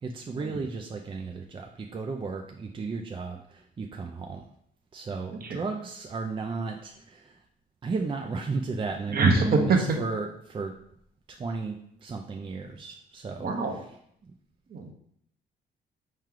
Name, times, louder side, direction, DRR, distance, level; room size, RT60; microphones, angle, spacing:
voice 1, 0.0-4.5 4.9-7.4 7.8-10.7 11.3-13.9 14.2-14.3, right 4 dB, 25° right, 3 dB, 0.4 m, -34 dB
voice 2, 9.1-10.0 13.3-13.8 14.7-14.9, right 3 dB, 50° right, 3 dB, 0.9 m, -25 dB
4.5 x 3.1 x 3.8 m, 0.70 s
cardioid pair, 90°, 20 cm